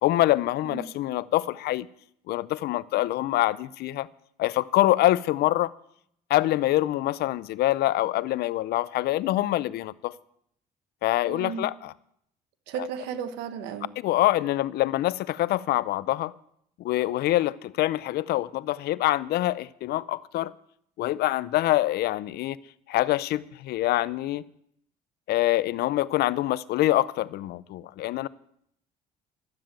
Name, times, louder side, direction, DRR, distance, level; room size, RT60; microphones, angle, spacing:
voice 1, 0.0-1.9 2.3-4.1 4.4-5.7 6.3-10.1 11.0-11.9 14.0-16.3 16.8-20.5 21.0-22.6 22.9-24.4 25.3-28.3, left 15 dB, 70° left, 0.5 m, -25 dB
voice 2, 11.2-11.7 12.7-13.9, right 7 dB, 90° right, 1.2 m, -34 dB
12.5 x 7.4 x 8.8 m
cardioid pair, 110°, 17 cm